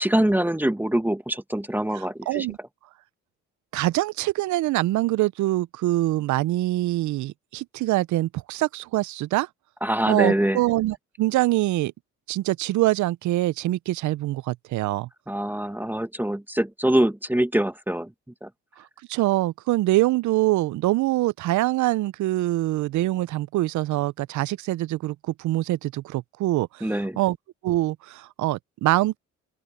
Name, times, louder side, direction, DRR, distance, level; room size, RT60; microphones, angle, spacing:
voice 1, 0.0-2.5 9.8-10.6 15.3-18.1 18.4-18.5 26.8-27.2, right 1 dB, 5° right, 1.1 m, -24 dB
voice 2, 1.9-2.6 3.7-9.5 10.1-11.9 12.3-15.1 19.1-26.9 27.2-27.4 27.6-29.2, right 17 dB, 70° right, 0.5 m, -24 dB
open air
cardioid pair, 90°, 30 cm